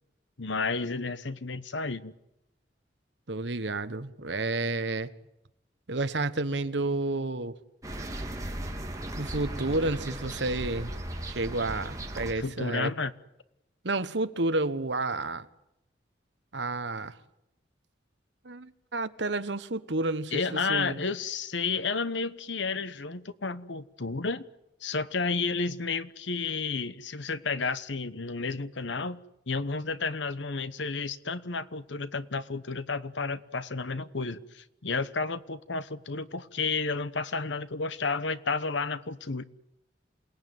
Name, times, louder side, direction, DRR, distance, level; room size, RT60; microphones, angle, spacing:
voice 1, 0.4-2.1 12.4-13.1 20.3-24.5 24.8-39.4, left 4 dB, 80° left, 1.1 m, -31 dB
voice 2, 3.3-5.1 5.9-7.5 9.2-10.9 11.2-12.9 13.8-15.4 16.5-17.1 18.4-21.0, right 2 dB, 70° right, 1.3 m, -30 dB
sound 1, 7.8-12.3, right 1 dB, 20° right, 2.7 m, -37 dB
28.0 x 19.0 x 9.5 m
head